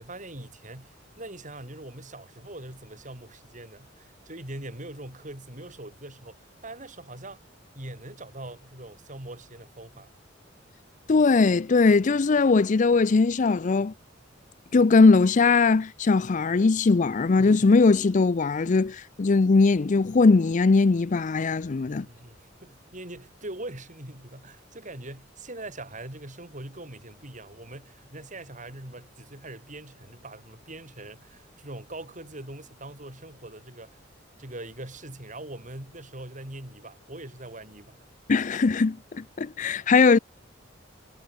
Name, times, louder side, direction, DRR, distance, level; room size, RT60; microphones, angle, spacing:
voice 1, 0.0-7.4 7.7-10.1 21.9-34.0 34.4-38.1, right 1 dB, 40° right, 7.3 m, -42 dB
voice 2, 11.1-13.9 14.7-22.1 38.3-40.2, left 4 dB, 40° left, 0.5 m, -20 dB
head